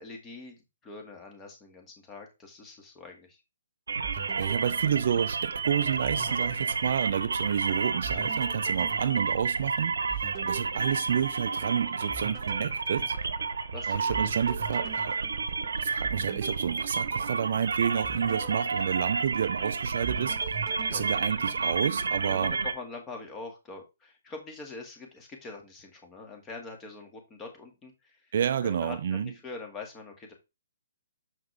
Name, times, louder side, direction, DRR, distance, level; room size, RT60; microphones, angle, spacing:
voice 1, 0.0-3.4 10.4-10.7 13.7-14.1 20.7-21.3 22.2-28.3 28.6-30.3, left 3 dB, 15° left, 2.1 m, -44 dB
sound 1, 3.9-22.7, right 4 dB, 80° right, 1.0 m, -31 dB
sound 2, 4.0-5.6 6.0-7.6 8.0-11.7 12.1-13.7 14.1-17.6 18.0-19.6 20.0-22.0, right 6 dB, 30° right, 1.1 m, -43 dB
voice 2, 4.4-9.9 10.4-13.2 13.9-15.2 15.8-20.6 20.9-22.6 28.3-29.3, right 8 dB, 55° right, 0.6 m, -30 dB
6.4 x 5.8 x 3.4 m
hypercardioid pair, 145°, 0 cm